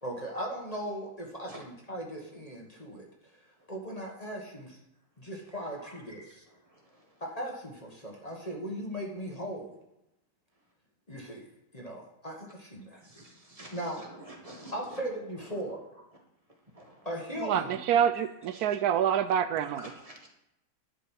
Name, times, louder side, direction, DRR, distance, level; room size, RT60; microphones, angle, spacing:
voice 1, 0.0-3.1 3.3-3.4 3.7-4.8 5.2-6.2 7.2-9.7 11.1-11.4 11.7-13.0 13.7-14.0 14.7-15.8 17.0-17.8, equal, 25° left, 0 dB, 1.5 m, -38 dB
voice 2, 5.8-7.2 10.6-10.7 12.9-15.5 16.0-17.1 17.7-17.8 18.1-18.8 19.5-20.3, right 1 dB, 25° right, 1 dB, 1.7 m, -51 dB
voice 3, 17.4-19.8, right 9 dB, 80° right, 12 dB, 1.1 m, -26 dB
11.0 x 5.3 x 7.3 m, 0.86 s
omnidirectional pair, 1.7 m